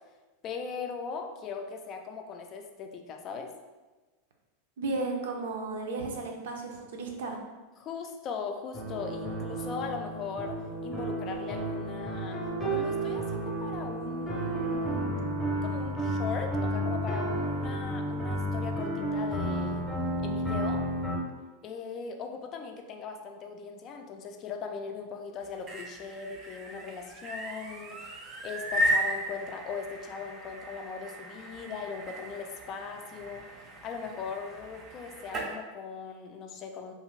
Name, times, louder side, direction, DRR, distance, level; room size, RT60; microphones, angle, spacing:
voice 1, 0.4-3.5 7.8-15.2 15.6-19.8 20.2-20.8 21.6-36.9, left 5 dB, 40° left, 4 dB, 0.4 m, -39 dB
voice 2, 4.8-7.4, right 3 dB, 80° right, 2 dB, 0.5 m, -34 dB
sound 1, 8.7-21.2, right 1 dB, 10° left, 0.7 m, -32 dB
sound 2, 25.4-35.5, right 1 dB, 30° right, 0.5 m, -35 dB
2.5 x 2.4 x 3.1 m, 1.2 s
supercardioid pair, 125°, 0 cm